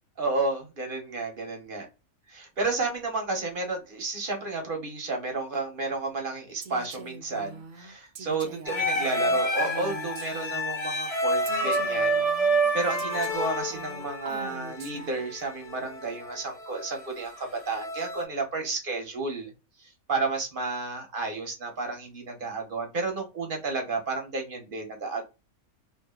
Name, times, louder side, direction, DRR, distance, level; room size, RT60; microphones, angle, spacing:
voice 1, 0.2-1.9 2.3-12.3 12.7-19.5 19.8-25.2, right 3 dB, 45° right, 2 dB, 0.9 m, -32 dB
Female speech woman speaking, 6.6-10.9 11.5-15.4, right 4 dB, 85° right, 0.4 m, -43 dB
sound 1, 8.7-18.2, right 1 dB, 50° left, 0.4 m, -29 dB
2.6 x 2.5 x 2.2 m, 0.28 s
omnidirectional pair, 1.5 m